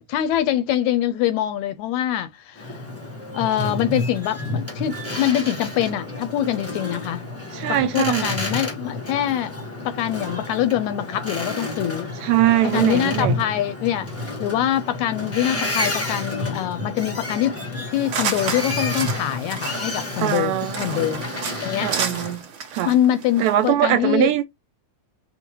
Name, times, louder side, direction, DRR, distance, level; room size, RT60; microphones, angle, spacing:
voice 1, 0.1-2.8 3.3-7.2 7.7-9.6 9.8-12.1 12.6-14.1 14.4-20.5 20.8-21.2 21.6-21.9 22.8-24.3, left 12 dB, 80° left, 1.7 m, -24 dB
Boat Water vehicle, 2.5-22.4, left 2 dB, 20° left, 0.3 m, -30 dB
voice 2, 7.5-8.3 12.1-13.4 20.2-21.1 21.8-22.4 22.7-22.9 23.4-24.4, right 13 dB, 80° right, 1.7 m, -21 dB
sound 1, 17.9-23.7, right 6 dB, 55° right, 1.5 m, -31 dB
5.4 x 2.1 x 4.5 m
omnidirectional pair, 3.5 m